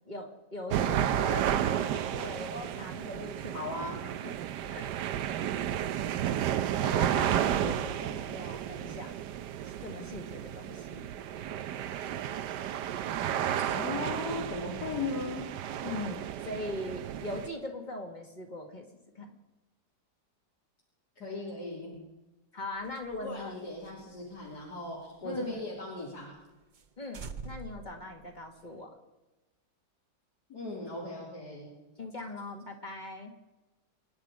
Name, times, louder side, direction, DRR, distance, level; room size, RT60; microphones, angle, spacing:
voice 1, 0.1-3.6 4.2-4.3 4.7-4.9 6.8-9.2 9.6-11.0 15.8-18.9 19.1-19.3 22.5-23.6 24.0-24.1 25.2-25.6 27.0-28.9 32.0-33.3, left 2 dB, 25° left, 3 dB, 2.1 m, -40 dB
sound 1, 0.7-17.5, right 10 dB, 75° right, 1.3 m, -32 dB
voice 2, 3.5-4.1 13.6-15.5 21.2-21.9 23.2-26.3 30.5-31.7, left 2 dB, 60° left, -4 dB, 3.4 m, -37 dB
sound 2, 22.8-25.6 26.0-26.1 26.4-26.5 26.7-26.9 27.1-28.8, right 5 dB, 45° right, 0.6 m, -47 dB
26.0 x 10.0 x 4.9 m, 1.1 s
omnidirectional pair, 1.9 m